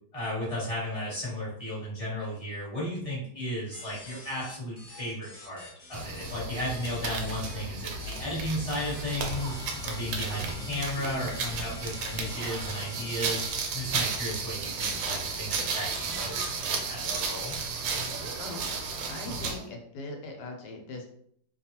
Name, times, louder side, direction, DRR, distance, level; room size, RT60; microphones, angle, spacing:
voice 1, 0.1-9.6 9.8-13.5 13.7-17.5, left 1 dB, 20° left, -8 dB, 1.1 m, -34 dB
sound 1, 3.7-7.5 8.0-8.3 8.7-13.5, left 3 dB, 45° left, 1.0 m, -47 dB
sound 2, 5.9-19.7, right 4 dB, 85° right, 1.3 m, -33 dB
voice 2, 19.1-21.0, left 2 dB, 75° left, 2 dB, 1.2 m, -40 dB
2.8 x 2.3 x 2.8 m, 0.66 s
omnidirectional pair, 1.9 m